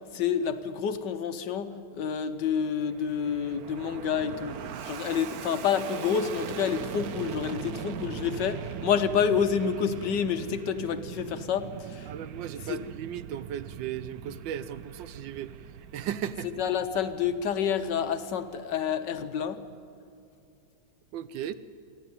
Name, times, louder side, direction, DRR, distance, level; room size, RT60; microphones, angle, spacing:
voice 1, 0.1-12.1 12.7-12.8 16.6-19.6, left 7 dB, 75° left, 9 dB, 1.5 m, -28 dB
Fixed-wing aircraft airplane, 2.3-19.0, right 8 dB, 65° right, 1.1 m, -41 dB
voice 2, 12.1-15.5 15.9-16.5 21.1-21.5, right 10 dB, 85° right, 14 dB, 1.4 m, -36 dB
28.5 x 12.0 x 9.5 m, 2.5 s
omnidirectional pair, 2.0 m